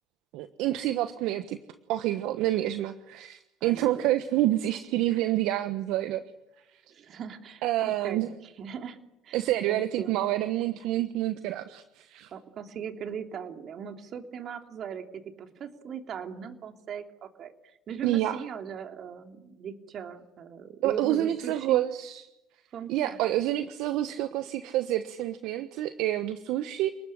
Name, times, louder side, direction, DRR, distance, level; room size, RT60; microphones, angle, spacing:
voice 1, 0.3-1.6 1.9-6.2 7.6-8.3 9.3-12.3 18.0-18.4 20.8-22.3 22.9-26.9, right 14 dB, 70° right, 10 dB, 1.2 m, -28 dB
voice 2, 3.6-4.1 6.9-8.2 8.6-9.0 9.2-9.4 9.7-10.2 12.3-17.5 17.9-21.9 22.7-23.2, right 7 dB, 55° right, 5 dB, 3.2 m, -39 dB
29.5 x 20.0 x 10.0 m, 0.96 s
hypercardioid pair, 70°, 0 cm